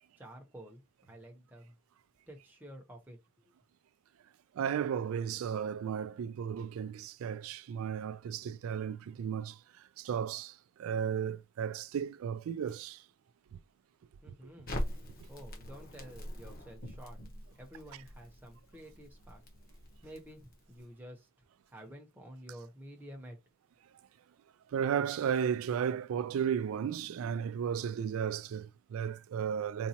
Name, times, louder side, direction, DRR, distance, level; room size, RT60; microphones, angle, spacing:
voice 1, 0.2-0.8 1.1-1.8 2.3-3.2 3.4-3.5 14.2-14.7 15.3-17.2 17.5-19.4 20.0-21.3 21.7-23.4, equal, 10° right, 0.7 m, -50 dB
voice 2, 4.5-9.6 10.0-13.0 24.7-29.9, right 8 dB, 75° right, 0.3 m, -34 dB
Crackle, 14.7-20.8, equal, 45° left, 0.9 m, -43 dB
4.0 x 2.2 x 2.8 m
head